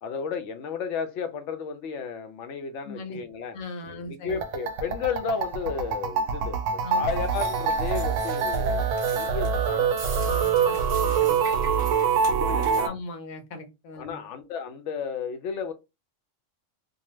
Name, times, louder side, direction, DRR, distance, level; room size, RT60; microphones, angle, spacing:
voice 1, 0.0-3.6 3.9-8.9 9.1-9.9 12.4-13.0 14.0-15.7, left 6 dB, 70° left, 0.8 m, -33 dB
voice 2, 2.8-3.2 3.5-4.4 6.8-7.2 10.2-11.4 12.8-14.2, left 3 dB, 85° left, 1.1 m, -39 dB
sound 1, 4.3-12.9, right 6 dB, 75° right, 0.9 m, -25 dB
sound 2, 7.1-12.9, right 3 dB, 30° right, 0.8 m, -42 dB
2.7 x 2.1 x 3.0 m
omnidirectional pair, 1.4 m